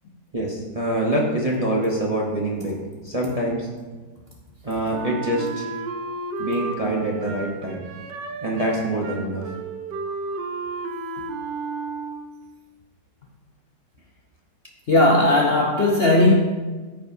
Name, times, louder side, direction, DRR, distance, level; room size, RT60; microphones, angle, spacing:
voice 1, 0.3-2.8 3.0-3.7 4.6-5.7 6.4-7.9 8.4-9.5, right 1 dB, 30° right, -4 dB, 0.7 m, -25 dB
Wind instrument woodwind instrument, 4.9-12.5, right 3 dB, 80° right, 1.3 m, -33 dB
voice 2, 14.9-16.3, left 2 dB, 55° left, -1 dB, 0.7 m, -17 dB
14.0 x 5.0 x 2.7 m, 1.3 s
omnidirectional pair, 1.9 m